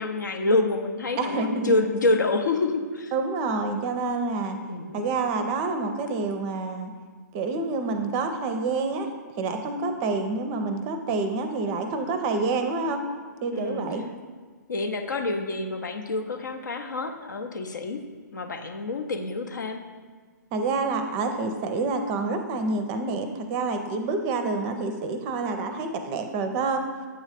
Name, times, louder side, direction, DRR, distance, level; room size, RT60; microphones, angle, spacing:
voice 1, 0.0-3.1 4.7-5.0 13.5-13.8 14.7-18.0 18.3-19.8, left 2 dB, 75° left, 6 dB, 0.7 m, -27 dB
voice 2, 1.2-1.7 3.1-4.6 4.9-6.9 7.3-13.0 13.4-14.0 20.5-26.9, right 3 dB, 30° right, 7 dB, 0.5 m, -28 dB
7.9 x 3.1 x 4.9 m, 1.5 s
figure-of-eight pair, 130°, 10 cm